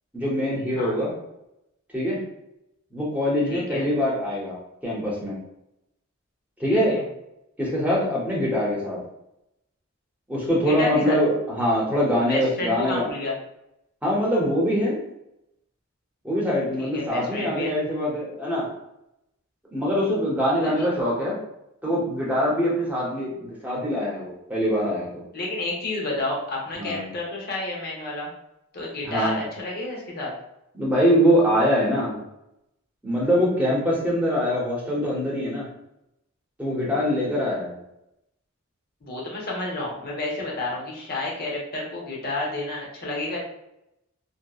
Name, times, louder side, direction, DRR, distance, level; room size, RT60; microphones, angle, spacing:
voice 1, 0.1-1.1 1.9-2.2 2.9-4.6 4.8-5.4 6.6-6.9 7.6-9.0 10.3-13.1 14.0-15.0 16.2-18.7 19.7-21.4 21.8-25.2 26.8-27.0 29.0-29.4 30.7-32.2 33.0-35.7 36.6-37.8, equal, 5° right, -6 dB, 0.7 m, -23 dB
voice 2, 3.5-3.8 6.7-7.0 10.6-11.2 12.3-13.3 16.8-17.7 20.6-20.8 25.3-28.3 28.7-30.3 39.0-43.4, left 2 dB, 45° left, -3 dB, 0.7 m, -30 dB
2.7 x 2.1 x 2.3 m, 0.85 s
head